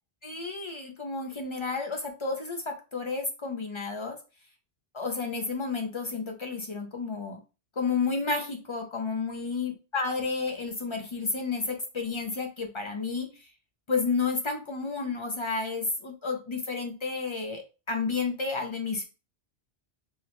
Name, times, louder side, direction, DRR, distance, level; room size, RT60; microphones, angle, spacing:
voice 1, 0.2-4.2 4.9-7.4 7.8-13.3 13.9-19.0, left 4 dB, 45° left, 4 dB, 0.4 m, -31 dB
4.0 x 2.0 x 2.9 m, 0.31 s
omnidirectional pair, 1.1 m